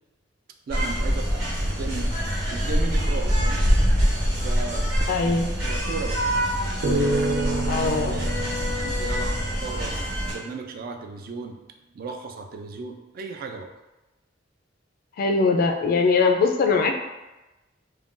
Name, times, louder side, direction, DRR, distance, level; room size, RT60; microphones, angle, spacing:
voice 1, 0.7-2.1 2.5-3.7 4.4-4.9 5.6-6.2 6.9-7.8 8.1-8.4 8.7-9.9 10.3-11.6 11.9-13.7, right 4 dB, 50° right, 4 dB, 0.3 m, -35 dB
sound 1, 0.7-10.3, equal, 70° right, 1.1 m, -24 dB
voice 2, 5.1-5.5 7.7-8.2 15.2-16.9, left 4 dB, 50° left, 4 dB, 0.3 m, -21 dB
sound 2, 5.8-7.1, equal, 20° right, 0.8 m, -46 dB
sound 3, 6.8-10.2, right 2 dB, 85° right, 0.6 m, -28 dB
2.5 x 2.2 x 3.6 m, 1.0 s
head